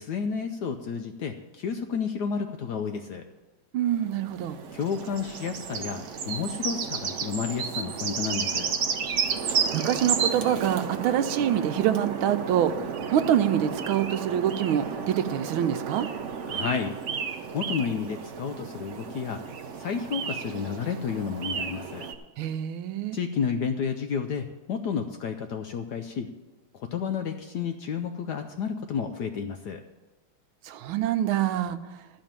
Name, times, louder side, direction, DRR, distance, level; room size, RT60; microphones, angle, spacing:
voice 1, 0.0-3.2 4.7-8.7 16.5-17.0 17.5-19.4 19.7-22.1 23.1-26.3 26.7-29.8, left 6 dB, 70° left, 6 dB, 1.0 m, -31 dB
voice 2, 3.7-4.6 9.7-12.7 13.1-16.1 22.4-23.2 30.6-31.8, right 10 dB, 85° right, 9 dB, 1.5 m, -25 dB
sound 1, 3.9-22.1, right 6 dB, 65° right, 0.7 m, -32 dB
12.5 x 5.0 x 8.8 m, 1.1 s
omnidirectional pair, 2.2 m